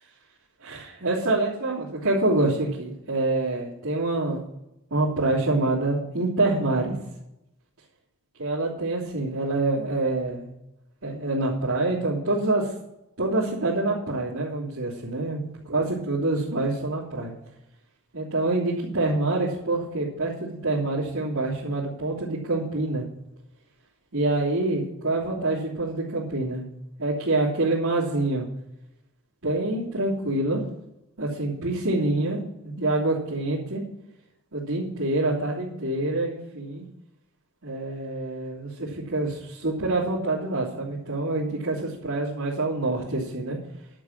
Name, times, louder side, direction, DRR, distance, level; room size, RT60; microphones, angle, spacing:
voice 1, 0.6-4.4 4.9-7.0 8.4-10.5 11.0-12.7 13.2-17.3 18.1-23.0 24.1-26.6 27.0-28.5 29.4-30.6 31.2-33.8 34.5-36.8 37.6-43.6, right 2 dB, 85° right, -10 dB, 3.3 m, -26 dB
11.5 x 7.0 x 7.4 m, 0.85 s
head